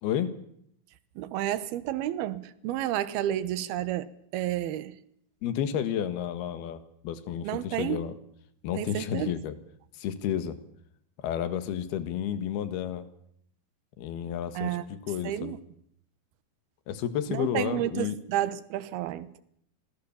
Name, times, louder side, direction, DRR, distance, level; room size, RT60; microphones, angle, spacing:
voice 1, 0.0-0.3 5.4-8.1 8.6-9.5 9.9-10.6 11.2-13.1 14.0-15.5 16.9-18.2, left 9 dB, 75° left, 11 dB, 3.5 m, -31 dB
voice 2, 1.2-4.9 7.4-8.0 8.8-9.4 14.5-14.8 15.2-15.6 17.3-19.4, right 12 dB, 75° right, 15 dB, 3.0 m, -31 dB
26.5 x 19.5 x 7.1 m, 0.70 s
omnidirectional pair, 4.7 m